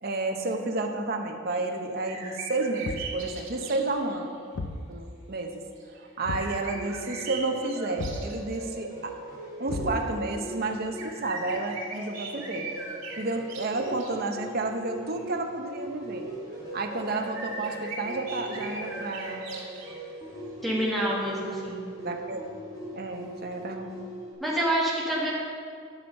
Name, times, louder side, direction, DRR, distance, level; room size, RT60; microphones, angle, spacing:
voice 1, 0.0-4.3 4.9-5.7 6.0-9.2 9.6-12.7 13.2-16.3 16.7-19.5 22.0-22.4 22.9-23.9, right 2 dB, 50° right, 4 dB, 0.9 m, -31 dB
sound 1, 1.5-1.7 2.0-4.4 5.8-8.8 9.1-9.2 10.5-14.4 15.1-15.2 17.1-20.0, right 3 dB, 80° right, 2.5 m, -40 dB
Thump thud, 2.8-3.3 4.6-4.9 6.3-6.6 8.0-8.3 9.7-10.3, left 2 dB, 70° left, 0.6 m, -34 dB
sound 2, 6.7-24.3, right 1 dB, 20° left, 2.5 m, -40 dB
voice 2, 20.6-21.8 24.4-25.3, right 1 dB, ahead, -5 dB, 1.8 m, -27 dB
11.5 x 6.2 x 5.4 m, 2.2 s
head